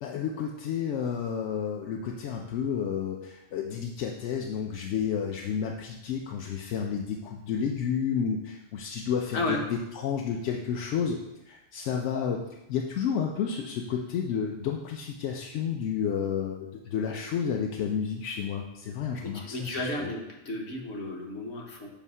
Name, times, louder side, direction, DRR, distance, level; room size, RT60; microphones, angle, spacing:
voice 1, 0.0-11.2 11.5-12.4 12.7-19.9, left 7 dB, 85° left, 1 dB, 0.9 m, -31 dB
voice 2, 19.2-21.9, left 1 dB, 70° left, 0 dB, 1.3 m, -33 dB
7.0 x 2.7 x 5.4 m, 0.91 s
omnidirectional pair, 1.2 m